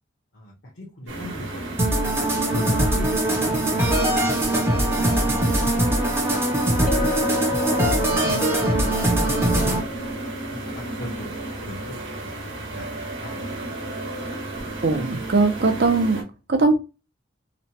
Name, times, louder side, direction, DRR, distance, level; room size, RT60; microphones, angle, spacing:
voice 1, 0.3-1.6 2.5-5.6 6.3-6.4 8.0-9.9 10.5-12.9 13.2-13.5, left 1 dB, 65° left, -1 dB, 0.8 m, -38 dB
sound 1, 1.1-16.2, right 2 dB, 75° right, 1.0 m, -33 dB
sound 2, 1.8-9.8, right 1 dB, 10° right, 0.6 m, -22 dB
Chink clink, 6.9-11.1, left 4 dB, 45° left, 0.5 m, -32 dB
voice 2, 14.8-16.2 16.5-16.8, right 3 dB, 55° right, 5 dB, 0.6 m, -20 dB
2.9 x 2.2 x 2.7 m, 0.29 s
head